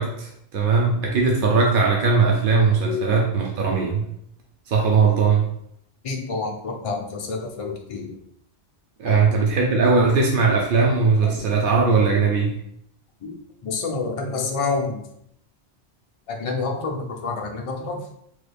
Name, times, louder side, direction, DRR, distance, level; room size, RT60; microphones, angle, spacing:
voice 1, 0.0-4.1 4.7-5.5 9.0-12.6, right 4 dB, 60° right, -1 dB, 0.7 m, -19 dB
voice 2, 6.0-8.2 9.0-9.2 11.2-11.5 13.2-15.0 16.3-18.0, left 4 dB, 50° left, 2 dB, 0.4 m, -28 dB
3.1 x 2.2 x 3.3 m, 0.74 s
omnidirectional pair, 1.1 m